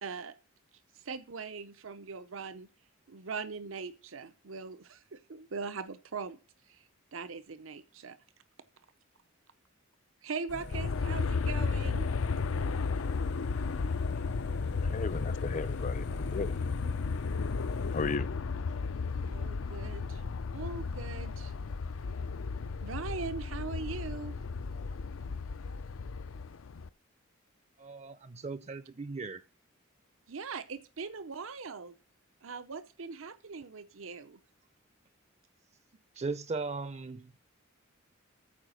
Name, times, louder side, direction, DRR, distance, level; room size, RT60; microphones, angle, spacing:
voice 1, 0.0-0.4 1.0-2.7 3.1-6.4 6.7-6.8 7.1-8.2 10.2-12.1 19.2-20.2 20.5-21.5 22.6-24.4 30.3-31.9 32.4-34.4, right 5 dB, 80° right, 0.8 m, -41 dB
sound 1, 10.5-18.2, left 2 dB, 60° left, 0.9 m, -44 dB
Aircraft, 10.7-26.9, left 4 dB, 80° left, 0.5 m, -34 dB
voice 2, 14.8-16.5 17.9-18.3, left 4 dB, 40° left, 0.6 m, -35 dB
voice 3, 27.8-29.4 36.1-37.4, right 3 dB, 35° right, 0.5 m, -38 dB
14.0 x 4.9 x 6.3 m
head